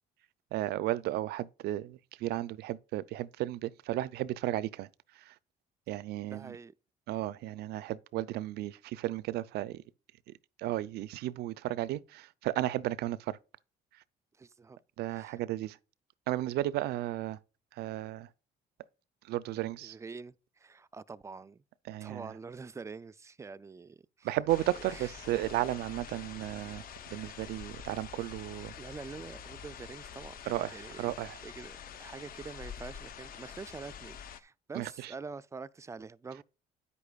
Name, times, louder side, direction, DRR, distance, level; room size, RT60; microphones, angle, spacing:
voice 1, 0.5-4.9 5.2-5.3 5.9-6.6 7.1-9.8 10.6-13.4 15.0-15.8 16.3-17.4 17.7-18.3 19.3-20.0 21.9-22.3 24.2-26.8 27.1-28.7 30.5-31.4 34.7-35.1, right 15 dB, 75° right, 0.5 m, -34 dB
voice 2, 6.3-6.7 14.4-14.8 15.1-15.4 19.8-21.6 22.0-24.3 24.8-25.1 28.8-30.4 30.7-31.1 31.4-36.4, right 4 dB, 15° right, 0.3 m, -46 dB
sound 1, 24.5-34.4, left 8 dB, 60° left, 0.8 m, -47 dB
9.6 x 8.3 x 2.3 m
cardioid pair, 110°, 17 cm